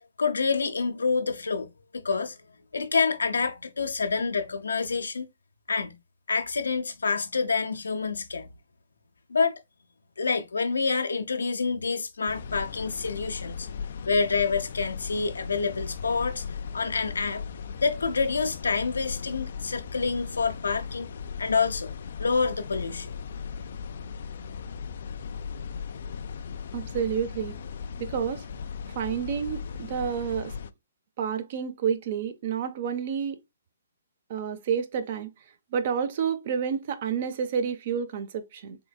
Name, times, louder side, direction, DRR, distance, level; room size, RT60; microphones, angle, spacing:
voice 1, 0.2-1.7 1.9-2.4 2.7-5.3 5.7-5.9 6.3-8.5 9.3-9.6 10.2-13.7 14.1-16.4 16.7-17.4 17.8-21.1 21.4-21.9 22.2-23.2, left 4 dB, 85° left, 0.8 m, -27 dB
sound 1, 12.3-30.7, left 6 dB, 60° left, 0.4 m, -37 dB
voice 2, 26.7-27.6 28.0-28.5 28.9-30.5 31.2-33.4 34.3-35.3 35.7-38.8, right 7 dB, 45° right, 0.6 m, -29 dB
3.8 x 3.5 x 2.3 m
hypercardioid pair, 140°, 0 cm